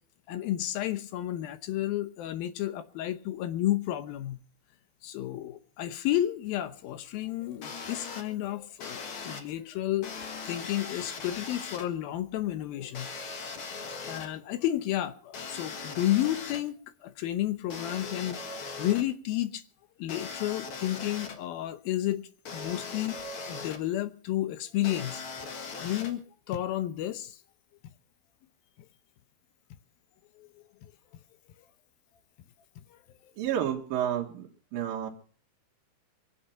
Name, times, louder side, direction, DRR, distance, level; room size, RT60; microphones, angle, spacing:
voice 1, 0.3-4.4 5.0-10.1 10.5-13.1 13.9-19.6 20.0-27.4 30.4-30.5 30.8-30.9 32.9-33.0, left 13 dB, 75° left, 2.6 m, -32 dB
sound 1, 7.6-8.2 8.8-9.4 10.0-11.8 12.9-14.3 15.3-16.6 17.7-19.0 20.1-21.4 22.5-23.8 24.8-26.1, left 4 dB, 55° left, 1.6 m, -39 dB
voice 2, 33.4-34.5 34.7-35.1, right 10 dB, 70° right, 3.2 m, -30 dB
24.0 x 8.6 x 5.7 m
omnidirectional pair, 4.4 m